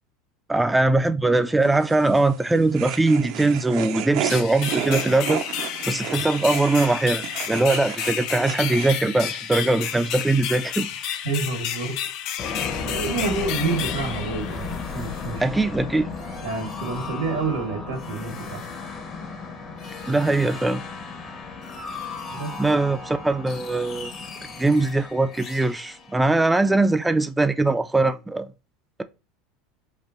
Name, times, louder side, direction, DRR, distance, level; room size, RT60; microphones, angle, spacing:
voice 1, 0.5-5.4 5.8-11.2 15.4-16.1 20.1-20.8 22.6-24.1 24.6-28.5, right 2 dB, 10° right, 0.4 m, -21 dB
sound 1, 1.6-9.0, right 10 dB, 60° right, 0.5 m, -33 dB
sound 2, 4.3-15.0, left 10 dB, 60° left, 0.4 m, -31 dB
voice 2, 11.2-12.0 12.8-15.4 16.4-18.6 22.3-22.5, right 4 dB, 90° right, 1.4 m, -28 dB
sound 3, 12.4-27.1, left 4 dB, 40° left, 1.0 m, -35 dB
5.0 x 2.6 x 2.5 m
supercardioid pair, 105°, 0 cm